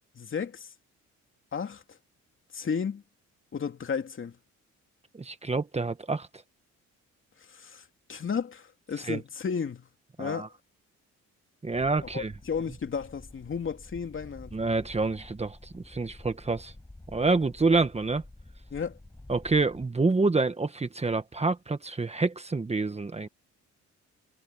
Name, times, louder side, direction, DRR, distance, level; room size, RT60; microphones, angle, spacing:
voice 1, 0.1-0.7 1.5-2.0 2.5-3.0 3.5-4.4 7.5-7.8 8.1-9.9 10.2-10.5 12.0-14.6 18.7-19.0, left 6 dB, 40° left, 2.8 m, -33 dB
voice 2, 5.1-6.3 9.1-9.2 10.2-10.5 11.6-12.3 14.5-16.7 17.1-18.2 19.3-23.3, right 3 dB, 20° right, 1.4 m, -27 dB
sound 1, 11.7-19.8, left 2 dB, 10° left, 7.1 m, -49 dB
cardioid pair, 90°, 30 cm